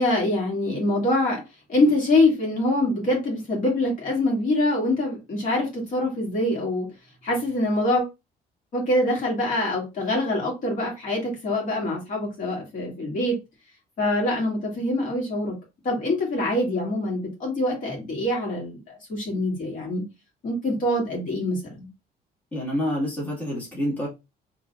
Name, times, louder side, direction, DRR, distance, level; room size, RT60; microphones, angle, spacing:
voice 1, 0.0-1.4 1.7-6.9 7.2-8.1 8.7-13.4 14.0-15.6 15.8-20.0 20.4-21.9, left 1 dB, 50° left, 2.0 m, -24 dB
voice 2, 22.5-24.1, equal, 10° left, 1.7 m, -27 dB
4.3 x 3.2 x 2.3 m
cardioid pair, 110°, 17 cm